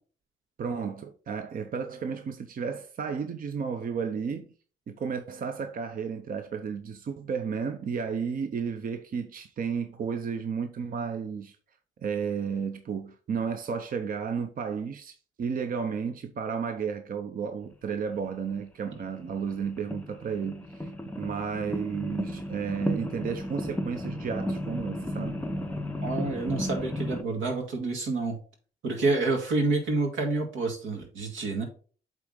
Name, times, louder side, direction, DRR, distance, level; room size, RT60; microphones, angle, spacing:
voice 1, 0.6-4.5 4.9-11.6 12.0-25.4, right 6 dB, 45° right, 0.7 m, -33 dB
sound 1, 18.5-18.6 19.4-27.2, left 1 dB, 10° left, 0.7 m, -34 dB
voice 2, 26.0-28.4 28.8-31.6, right 3 dB, 80° right, 2.2 m, -28 dB
8.2 x 3.6 x 3.8 m
cardioid pair, 90°, 20 cm